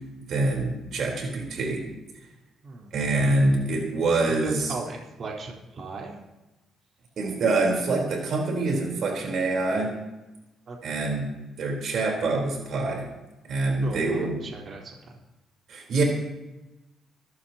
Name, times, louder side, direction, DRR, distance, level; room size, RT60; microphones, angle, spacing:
voice 1, 0.3-1.8 2.9-4.7 7.2-9.9 10.8-11.3 11.6-13.1 13.4-14.5 15.7-16.0, right 2 dB, 65° right, 0 dB, 4.0 m, -25 dB
voice 2, 4.4-6.2 10.7-11.0 13.8-15.1, right 3 dB, 50° right, -2 dB, 4.1 m, -37 dB
25.5 x 14.0 x 3.0 m, 1.0 s
cardioid pair, 90°, 0 cm